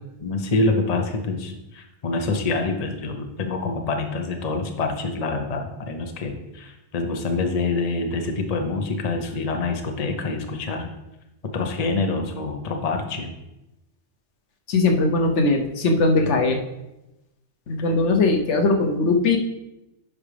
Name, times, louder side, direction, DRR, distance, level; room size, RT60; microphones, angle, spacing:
voice 1, 0.2-10.9 11.5-13.3 16.2-16.3, left 3 dB, 40° left, 4 dB, 0.8 m, -26 dB
voice 2, 14.7-16.6 17.7-19.4, left 3 dB, 80° left, 4 dB, 1.1 m, -20 dB
10.5 x 4.9 x 3.3 m, 0.95 s
omnidirectional pair, 1.2 m